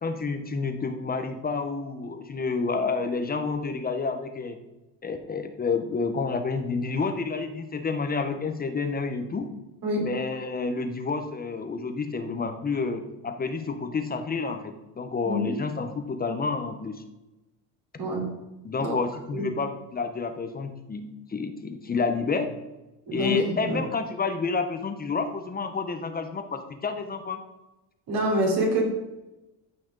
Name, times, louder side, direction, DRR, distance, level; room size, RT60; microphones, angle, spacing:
voice 1, 0.0-4.6 5.0-9.5 10.0-17.0 18.6-22.5 23.1-27.4, left 4 dB, 20° left, 7 dB, 0.9 m, -29 dB
voice 2, 15.2-15.6 18.0-18.2 18.8-18.9 19.3-19.5 23.1-23.4 23.6-23.8 28.1-28.9, equal, 50° right, -2 dB, 3.9 m, -26 dB
14.5 x 5.9 x 3.9 m, 1.0 s
cardioid pair, 120°, 42 cm